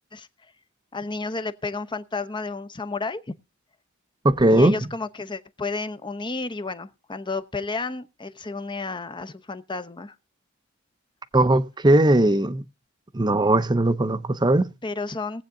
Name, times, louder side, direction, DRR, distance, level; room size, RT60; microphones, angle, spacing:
voice 1, 0.9-3.3 4.5-10.1 14.8-15.4, left 3 dB, 20° left, 0.8 m, -31 dB
voice 2, 4.2-4.7 11.3-12.6 13.1-14.7, right 1 dB, 20° right, 0.7 m, -19 dB
19.0 x 8.1 x 3.8 m
head